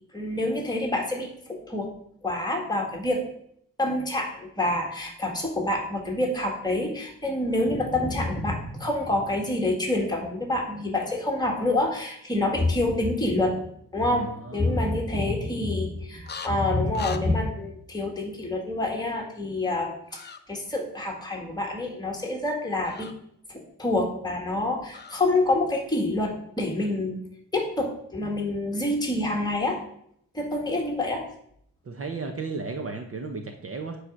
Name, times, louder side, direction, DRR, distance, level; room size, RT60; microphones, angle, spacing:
voice 1, 0.1-1.9 2.2-3.2 3.8-13.6 13.9-23.1 23.5-27.2 27.5-29.8 30.3-31.2, left 2 dB, 10° left, 0 dB, 1.8 m, -27 dB
voice 2, 14.1-14.8 31.9-34.0, right 4 dB, 40° right, 5 dB, 0.8 m, -34 dB
sound 1, 16.2-16.5 16.9-17.2 20.1-20.4 22.8-23.1 24.9-25.2, left 6 dB, 30° left, 0.6 m, -39 dB
8.8 x 5.0 x 6.3 m, 0.70 s
wide cardioid pair, 160°, 35 cm